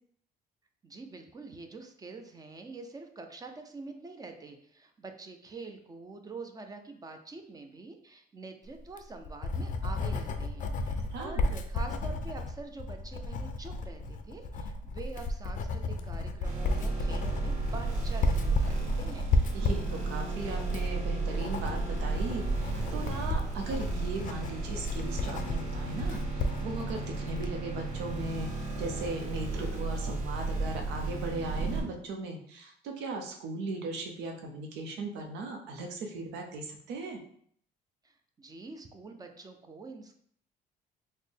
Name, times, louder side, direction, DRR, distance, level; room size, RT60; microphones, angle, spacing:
voice 1, 0.8-19.3 38.0-40.2, right 3 dB, 20° right, 5 dB, 0.4 m, -45 dB
Writing, 8.8-27.6, left 2 dB, 50° left, 0.4 m, -33 dB
voice 2, 10.9-11.4 19.5-37.2, right 2 dB, 90° right, 3 dB, 0.7 m, -38 dB
sound 1, 16.4-31.8, right 3 dB, 45° right, 1.1 m, -33 dB
4.0 x 2.1 x 3.3 m, 0.63 s
cardioid pair, 110°, 17 cm